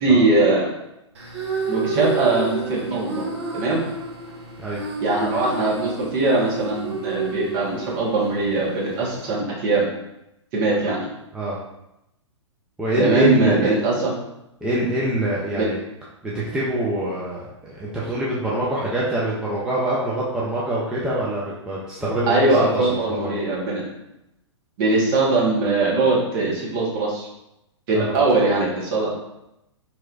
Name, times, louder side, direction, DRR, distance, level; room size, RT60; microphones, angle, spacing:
voice 1, 0.0-0.7 1.7-3.2 3.5-3.8 5.0-9.8 10.5-11.1 13.0-14.1 15.5-15.7 22.3-23.8 24.8-27.3 27.9-29.1, right 3 dB, 40° right, -4 dB, 1.4 m, -21 dB
sound 1, 1.1-9.4, right 3 dB, 60° right, 1.0 m, -30 dB
voice 2, 12.8-13.7 14.6-15.8 16.2-22.6 23.0-23.3 27.9-28.1, right 1 dB, 5° right, -7 dB, 0.6 m, -25 dB
4.5 x 3.1 x 2.5 m, 0.87 s
figure-of-eight pair, 115°, 16 cm